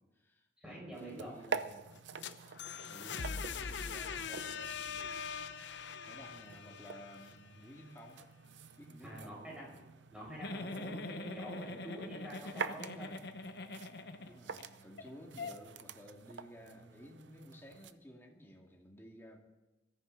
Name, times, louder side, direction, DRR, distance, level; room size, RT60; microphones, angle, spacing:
voice 1, 0.0-1.9 2.9-5.2 6.0-8.2 8.8-9.8 14.2-19.4, equal, 15° left, 0 dB, 2.2 m, -54 dB
voice 2, 0.6-1.4 9.0-9.8 10.1-13.1 15.3-15.4, right 1 dB, 5° right, -4 dB, 6.7 m, -47 dB
sound 1, 0.9-17.9, right 5 dB, 80° right, 0.7 m, -47 dB
sound 2, 2.0-7.8, left 6 dB, 80° left, 0.8 m, -42 dB
Giggle, 10.4-14.6 15.0-15.1 15.4-15.5, left 2 dB, 60° left, 1.0 m, -43 dB
22.0 x 14.0 x 4.0 m, 1.1 s
head